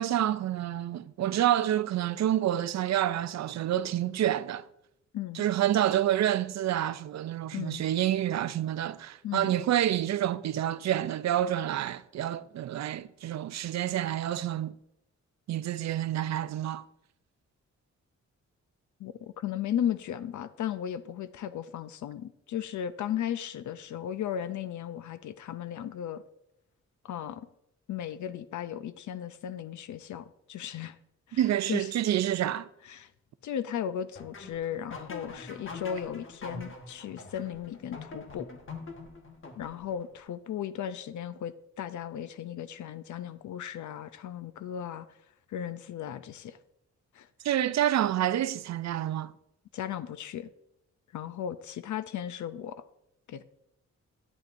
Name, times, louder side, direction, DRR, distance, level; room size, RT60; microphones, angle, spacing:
voice 1, 0.0-4.6 5.3-14.7 15.5-16.8 31.3-32.7 47.4-49.3, right 12 dB, 65° right, 0.4 m, -28 dB
voice 2, 7.5-7.8 9.2-9.6 19.0-26.2 27.0-27.5 27.9-31.0 31.3-31.4 31.7-31.9 32.8-33.1 33.4-38.5 39.6-45.2 45.5-46.6 47.1-47.3 49.7-50.5 51.1-52.8 53.3-53.4, left 10 dB, 85° left, 0.5 m, -36 dB
sound 1, 34.2-40.1, left 3 dB, 45° left, 1.3 m, -44 dB
10.5 x 10.0 x 2.6 m
wide cardioid pair, 170°, 29 cm